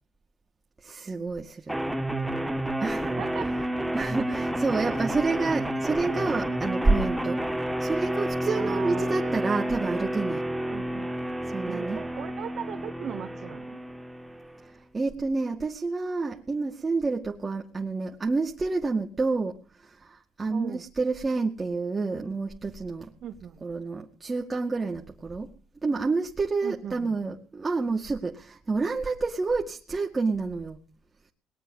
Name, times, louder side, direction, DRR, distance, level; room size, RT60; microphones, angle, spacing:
voice 1, 0.8-1.8 2.8-3.1 3.9-7.4 7.8-10.4 11.5-12.0 14.7-23.1 23.6-25.5 25.8-30.8, right 3 dB, 25° right, 1 dB, 2.1 m, -29 dB
sound 1, 1.7-14.7, right 1 dB, 5° right, 1.9 m, -30 dB
voice 2, 3.0-3.5 8.5-9.4 10.7-11.1 11.7-13.8 20.5-20.9 23.2-23.6 26.6-27.2, right 8 dB, 60° right, 7 dB, 1.8 m, -38 dB
20.0 x 9.1 x 7.3 m, 0.40 s
cardioid pair, 85°, 0 cm